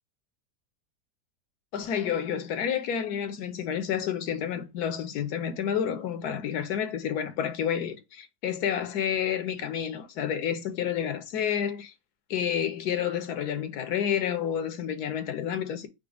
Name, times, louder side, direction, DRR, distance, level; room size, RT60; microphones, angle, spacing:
voice 1, 1.7-11.9 12.3-15.9, left 8 dB, 75° left, 1.2 m, -30 dB
5.1 x 2.1 x 4.8 m
omnidirectional pair, 1.7 m